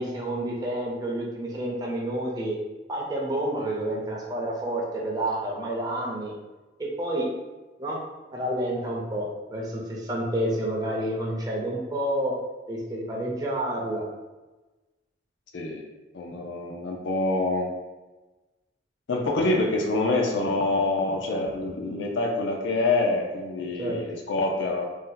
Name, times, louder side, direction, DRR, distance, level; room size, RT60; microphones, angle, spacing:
voice 1, 0.0-2.6 2.9-6.3 6.8-7.3 7.8-8.0 8.3-12.3 12.7-14.1 23.8-24.0, right 1 dB, 20° right, -3 dB, 0.4 m, -29 dB
voice 2, 16.1-17.7 19.1-24.8, left 2 dB, 80° left, 0 dB, 0.5 m, -26 dB
2.6 x 2.1 x 3.8 m, 1.2 s
head